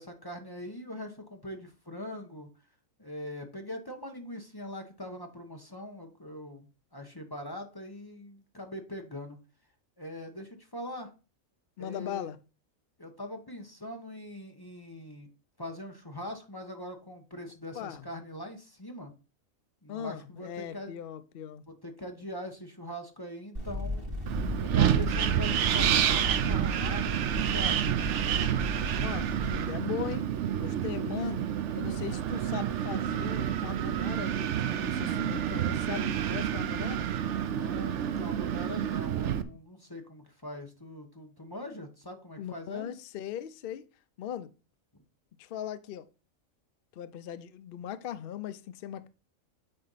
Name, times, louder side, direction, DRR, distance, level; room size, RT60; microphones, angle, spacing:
voice 1, 0.0-2.5 3.0-9.4 10.0-11.1 11.8-12.3 13.0-15.3 15.6-19.1 19.8-21.0 21.7-24.0 24.6-27.9 37.3-42.9, left 1 dB, 20° left, 0.9 m, -42 dB
voice 2, 11.8-12.4 17.7-18.1 19.9-21.7 28.8-30.3 30.6-31.5 31.8-37.1 42.4-43.9 44.2-44.5 45.4-46.1 46.9-49.1, left 10 dB, 60° left, 0.6 m, -39 dB
sound 1, 23.5-29.6, left 1 dB, 40° right, 3.5 m, -36 dB
Wind, 24.3-39.4, right 10 dB, 65° right, 0.9 m, -29 dB
8.9 x 4.3 x 4.0 m
omnidirectional pair, 1.4 m